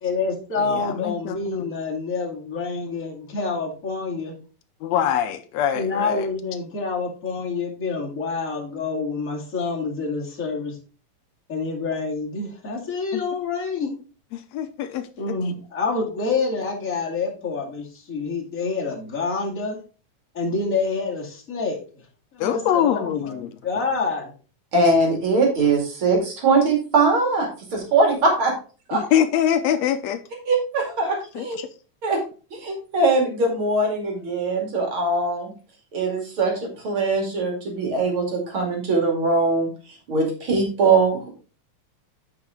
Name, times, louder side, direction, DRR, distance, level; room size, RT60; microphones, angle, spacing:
voice 1, 0.0-4.3 5.7-10.8 11.5-13.9 15.2-19.8 20.3-21.8 22.3-24.3, left 4 dB, 30° left, 2.5 m, -27 dB
voice 2, 0.7-1.8 4.8-6.3 13.1-13.2 14.3-15.4 22.4-23.5 28.9-30.2 31.4-31.7, left 9 dB, 80° left, 1.7 m, -24 dB
voice 3, 24.7-28.5 28.9-29.0 30.5-31.6 32.0-32.2 32.5-35.5 35.9-39.7 40.1-41.3, right 3 dB, 45° right, 3.1 m, -21 dB
9.4 x 5.7 x 3.7 m
omnidirectional pair, 3.3 m